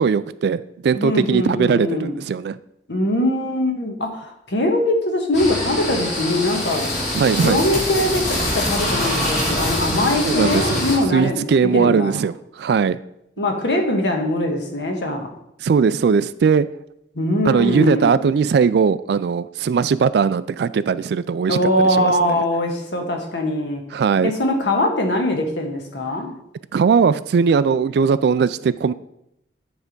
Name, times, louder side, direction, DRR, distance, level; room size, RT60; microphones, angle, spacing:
voice 1, 0.0-2.6 7.1-7.6 10.2-10.8 11.1-13.0 15.6-16.7 17.4-21.7 22.0-22.4 23.9-24.3 26.7-28.9, right 6 dB, 65° right, 16 dB, 0.3 m, -19 dB
voice 2, 0.9-2.1 2.9-6.9 7.3-12.2 13.4-15.4 17.1-18.3 21.5-23.8 24.2-26.3, left 1 dB, 75° left, 3 dB, 1.4 m, -22 dB
sound 1, 5.3-11.0, left 1 dB, 40° left, 2.5 m, -24 dB
9.7 x 3.5 x 5.2 m, 0.78 s
head